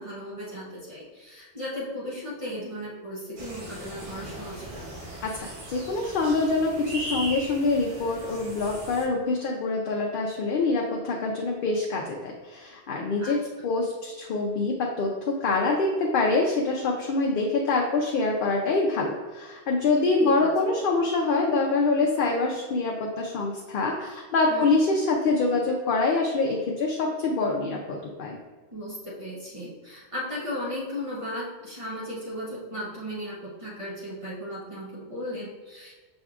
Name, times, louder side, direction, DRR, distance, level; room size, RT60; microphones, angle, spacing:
voice 1, 0.0-4.9 13.2-13.4 20.2-20.3 24.5-24.7 28.7-35.9, left 1 dB, 30° right, -8 dB, 1.0 m, -36 dB
sound 1, 3.4-9.1, right 1 dB, 90° right, 1.3 m, -38 dB
voice 2, 5.2-28.4, left 3 dB, 60° left, 0 dB, 0.7 m, -25 dB
6.2 x 3.5 x 2.4 m, 1.4 s
omnidirectional pair, 1.1 m